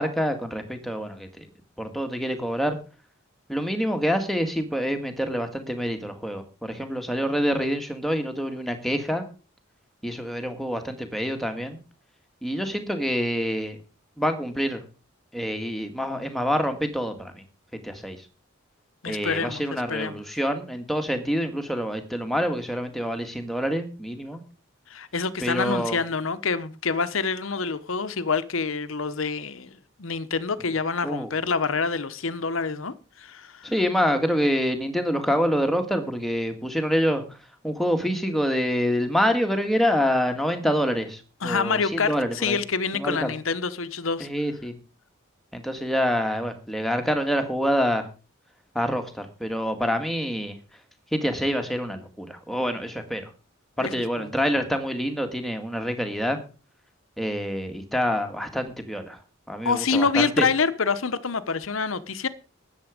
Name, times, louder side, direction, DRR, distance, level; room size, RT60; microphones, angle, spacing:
voice 1, 0.0-1.5 1.8-2.8 3.5-9.2 10.0-11.8 12.4-13.8 14.2-14.8 15.3-17.4 17.8-18.3 19.1-24.4 25.4-26.0 31.0-31.3 33.6-37.4 37.6-42.6 42.9-43.3 44.2-44.7 45.5-48.1 48.7-50.6 51.1-53.3 53.8-56.4 57.2-59.2 59.5-60.5, equal, ahead, 1.9 m, -26 dB
voice 2, 19.0-19.6 19.9-20.2 24.9-33.7 41.4-44.3 53.8-53.9 54.2-54.3 59.6-62.3, left 5 dB, 80° left, 1.0 m, -27 dB
13.0 x 9.5 x 5.1 m
head